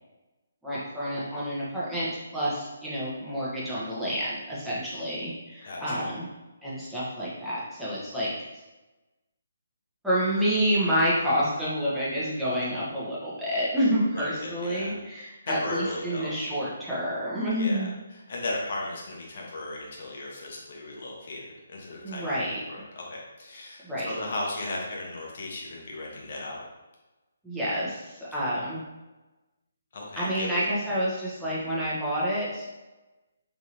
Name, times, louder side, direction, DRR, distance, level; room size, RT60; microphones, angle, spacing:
voice 1, 0.6-6.3 6.6-8.4 10.0-18.0 22.0-22.6 23.8-24.1 27.4-28.8 30.2-32.7, equal, ahead, -10 dB, 0.9 m, -28 dB
voice 2, 5.6-6.1 14.1-15.0 15.4-16.3 17.6-17.8 18.3-22.4 22.7-26.6 29.9-30.7, left 2 dB, 45° left, -2 dB, 0.9 m, -36 dB
3.6 x 2.9 x 2.9 m, 1.1 s
figure-of-eight pair, 140°, 0 cm